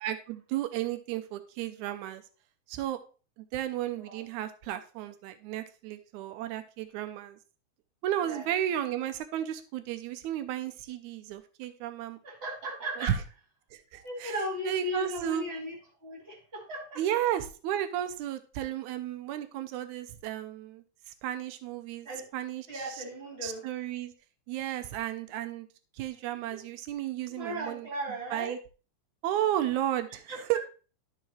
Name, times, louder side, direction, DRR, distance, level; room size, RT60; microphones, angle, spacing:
voice 1, 0.0-2.2 2.7-3.0 3.4-7.4 8.0-12.2 13.0-13.2 13.7-14.4 14.6-15.4 17.0-22.1 22.3-22.8 23.4-24.1 24.5-25.7 25.9-27.9 28.3-28.6 29.2-30.6, right 12 dB, 90° right, 10 dB, 2.0 m, -33 dB
voice 2, 12.2-13.1 13.9-15.7 16.0-17.0 22.0-22.2 22.7-23.6 26.5-26.6 27.3-28.6 30.3-30.4, equal, 25° right, 0 dB, 2.2 m, -37 dB
12.0 x 4.8 x 3.1 m, 0.36 s
omnidirectional pair, 3.4 m